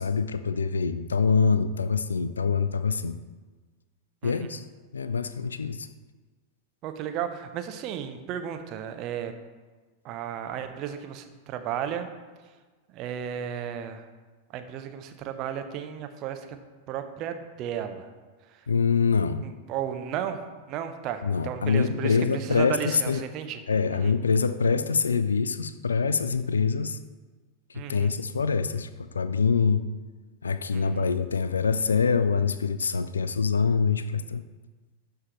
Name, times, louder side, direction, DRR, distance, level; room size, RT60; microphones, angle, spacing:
voice 1, 0.0-3.2 4.2-4.6 4.9-5.9 18.7-19.4 21.2-23.2 23.7-27.0 27.7-29.8 30.4-34.4, left 5 dB, 75° left, 12 dB, 0.4 m, -25 dB
voice 2, 6.8-9.3 10.0-12.1 12.9-14.1 14.5-16.6 16.9-18.1 18.5-18.7 19.4-23.6 23.9-24.1 27.7-28.1 30.7-31.1, right 9 dB, 40° right, 8 dB, 0.8 m, -34 dB
12.0 x 5.7 x 3.1 m, 1.3 s
figure-of-eight pair, 90°, 0 cm